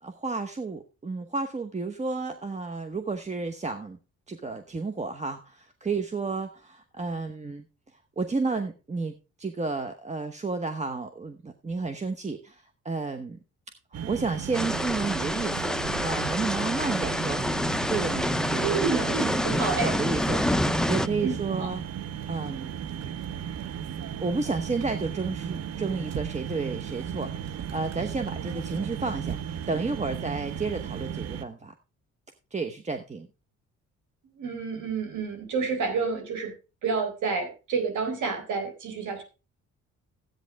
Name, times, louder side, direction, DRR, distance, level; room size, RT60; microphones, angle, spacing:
voice 1, 0.0-4.0 4.3-7.6 8.2-13.4 14.1-17.4 17.9-20.4 20.9-21.8 22.3-22.8 24.2-31.7 32.5-33.3, right 4 dB, 25° right, 8 dB, 1.0 m, -32 dB
sound 1, 13.9-31.4, right 8 dB, 60° right, 0.9 m, -35 dB
sound 2, 14.5-21.1, left 1 dB, ahead, 0.4 m, -27 dB
voice 2, 18.6-19.9 21.2-21.7 34.4-36.5 36.8-39.2, right 5 dB, 75° right, 5 dB, 4.0 m, -29 dB
13.0 x 9.0 x 3.5 m, 0.30 s
cardioid pair, 90°, 30 cm